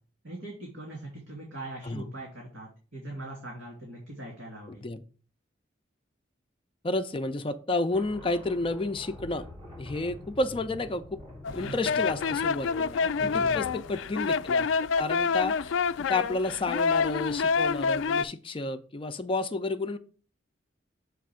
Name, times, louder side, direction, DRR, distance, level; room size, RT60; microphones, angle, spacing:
voice 1, 0.2-4.8 11.5-12.0 13.2-13.6, right 1 dB, 80° right, -2 dB, 2.9 m, -41 dB
voice 2, 6.8-9.5 9.8-11.2 11.5-14.7 15.0-15.7 16.1-20.0, left 2 dB, 30° left, 9 dB, 0.5 m, -31 dB
sound 1, 7.9-15.3, left 1 dB, 25° right, 2.2 m, -47 dB
sound 2, 11.4-18.2, left 5 dB, 85° left, 0.3 m, -27 dB
7.4 x 3.4 x 6.2 m, 0.38 s
head